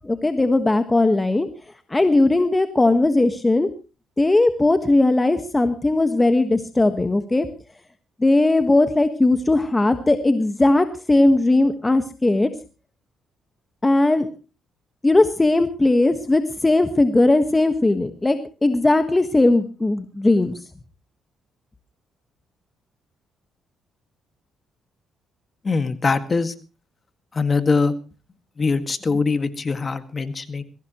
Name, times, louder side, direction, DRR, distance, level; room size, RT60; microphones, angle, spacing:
voice 1, 0.0-1.5 1.9-3.7 4.2-7.5 8.2-12.5 13.8-14.3 15.0-20.6, left 2 dB, 15° left, 8 dB, 1.4 m, -18 dB
voice 2, 25.6-26.5 27.3-27.9 28.6-30.6, left 4 dB, 35° left, 10 dB, 1.9 m, -22 dB
22.0 x 16.5 x 3.1 m, 0.34 s
cardioid pair, 90°, 0 cm